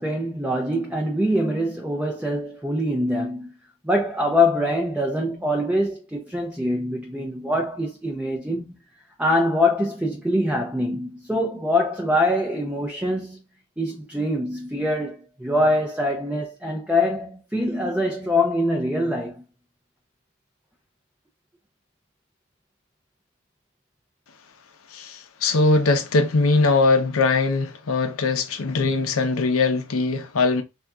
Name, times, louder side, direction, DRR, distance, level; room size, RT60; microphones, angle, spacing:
voice 1, 0.0-3.5 3.8-8.7 9.2-13.4 13.8-19.4, left 1 dB, 5° right, 0.4 m, -24 dB
voice 2, 24.9-30.6, left 3 dB, 85° left, 0.6 m, -21 dB
3.7 x 2.4 x 2.2 m
head